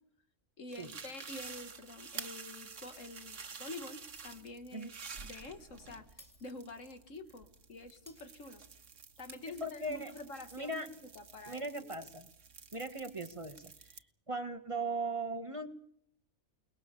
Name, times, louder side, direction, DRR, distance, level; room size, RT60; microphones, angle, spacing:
voice 1, 0.6-4.9 5.2-8.6 9.2-10.7 11.0-12.1, left 2 dB, 80° left, 9 dB, 2.0 m, -48 dB
sound 1, 0.7-14.0, right 5 dB, 75° right, 1.8 m, -50 dB
Shatter, 4.2-4.7 5.0-5.2 6.2-7.2 8.1-9.1, left 1 dB, 15° left, 3.6 m, -61 dB
voice 2, 9.5-10.1 10.5-10.9 11.5-12.3 12.7-13.7 14.3-15.7, right 2 dB, 25° right, 9 dB, 1.7 m, -38 dB
29.0 x 20.0 x 6.9 m, 0.68 s
omnidirectional pair, 1.3 m